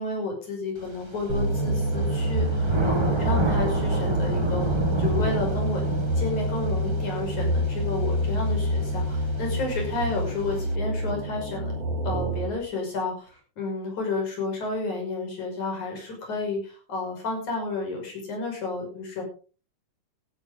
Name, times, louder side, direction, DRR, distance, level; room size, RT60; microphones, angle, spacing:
voice 1, 0.0-4.7 5.0-5.8 6.2-11.8 12.0-19.2, left 3 dB, 70° left, 1 dB, 7.3 m, -31 dB
Thunder / Rain, 0.8-10.7, right 2 dB, 30° right, 0.5 m, -32 dB
sound 1, 1.3-12.6, equal, 50° right, 4.3 m, -27 dB
15.5 x 13.0 x 3.9 m, 0.37 s
omnidirectional pair, 3.5 m